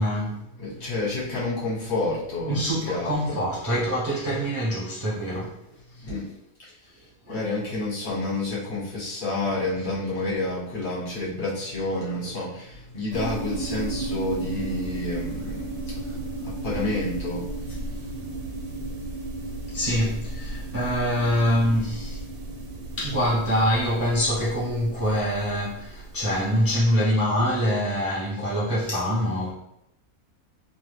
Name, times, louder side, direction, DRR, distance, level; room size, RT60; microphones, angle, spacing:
voice 1, 0.0-0.4 2.5-5.5 7.3-7.4 19.7-22.2 23.0-29.5, equal, 15° right, -8 dB, 0.5 m, -25 dB
voice 2, 0.6-2.6 2.9-3.4 5.9-6.3 6.6-6.7 7.3-18.2, left 2 dB, 35° left, -7 dB, 1.3 m, -30 dB
sound 1, 13.1-26.5, right 2 dB, 80° right, 1.1 m, -34 dB
2.7 x 2.3 x 3.3 m, 0.79 s
omnidirectional pair, 1.6 m